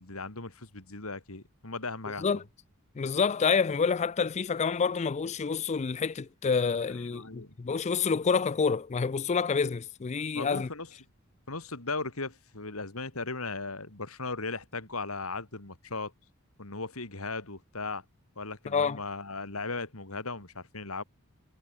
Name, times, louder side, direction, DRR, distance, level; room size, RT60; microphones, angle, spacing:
voice 1, 0.0-2.3 7.1-7.5 10.3-10.9 11.5-16.1 16.6-18.0 18.4-21.0, left 3 dB, 80° left, 3.5 m, -37 dB
voice 2, 2.1-2.4 3.0-10.7 18.7-19.0, left 5 dB, 30° left, 0.4 m, -28 dB
head